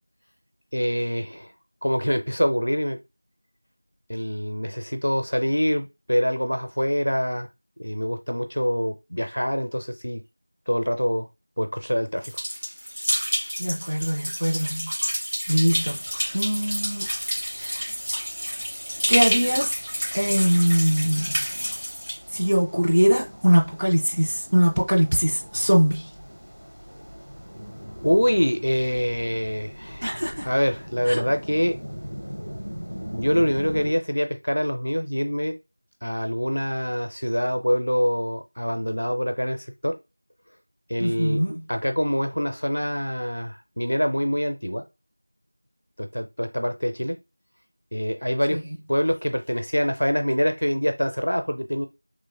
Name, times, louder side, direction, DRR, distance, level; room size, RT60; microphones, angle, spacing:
voice 1, 0.7-1.5 1.8-3.0 4.1-7.5 7.8-10.2 10.7-11.3 11.6-12.3 28.0-30.0 30.4-31.8 33.1-35.6 36.0-40.0 40.9-41.4 41.7-44.8 46.0-47.2 47.9-48.6 48.9-51.9, equal, 50° left, 0.5 m, -25 dB
sound 1, 12.2-22.2, equal, 35° right, 1.8 m, -29 dB
voice 2, 13.6-14.9 15.5-16.0 16.3-17.1 17.5-17.8 19.1-19.7 20.1-21.4 22.3-26.1 30.0-30.5 31.1-31.2 41.0-41.6 48.5-48.8, equal, 15° right, 0.4 m, -22 dB
sound 2, 15.8-33.9, equal, 70° right, 1.2 m, -41 dB
3.7 x 3.1 x 2.2 m
figure-of-eight pair, 180°, 0 cm